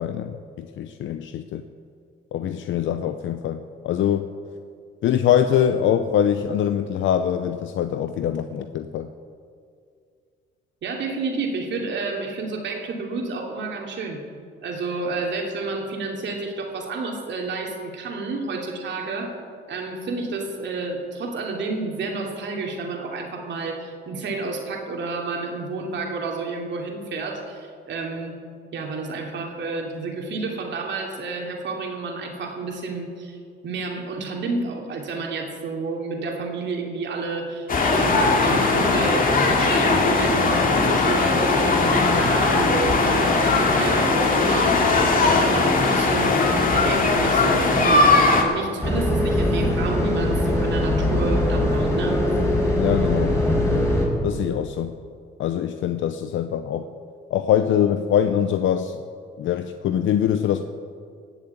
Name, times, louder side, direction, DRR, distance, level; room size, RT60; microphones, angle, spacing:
voice 1, 0.0-1.6 2.3-4.3 5.0-9.1 52.8-53.4 54.2-55.0 55.4-56.9 57.3-59.0 59.4-60.6, left 9 dB, 75° left, 9 dB, 0.7 m, -23 dB
voice 2, 10.8-14.2 14.6-19.3 19.7-28.4 28.7-33.4 33.6-52.2, right 3 dB, 65° right, 1 dB, 2.8 m, -30 dB
sound 1, 37.7-48.4, left 3 dB, 45° left, 2.6 m, -19 dB
sound 2, 48.8-54.1, left 1 dB, 15° left, 4.3 m, -21 dB
17.5 x 7.2 x 8.2 m, 2.2 s
cardioid pair, 90°, 20 cm